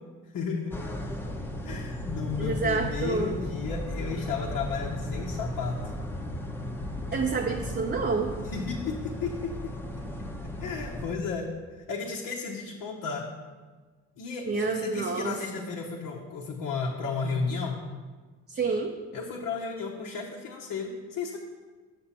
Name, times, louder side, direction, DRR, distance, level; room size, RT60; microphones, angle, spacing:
voice 1, 0.3-0.8 1.6-5.8 8.5-9.7 10.6-11.5 11.9-13.3 14.2-17.8 19.1-21.4, left 5 dB, 65° left, -3 dB, 1.1 m, -33 dB
sound 1, 0.7-11.2, left 1 dB, 5° left, 0.9 m, -35 dB
voice 2, 2.4-3.4 7.1-8.3 14.5-15.6 18.5-18.9, right 4 dB, 30° right, 2 dB, 0.7 m, -28 dB
6.9 x 6.3 x 4.3 m, 1.4 s
supercardioid pair, 65°, 36 cm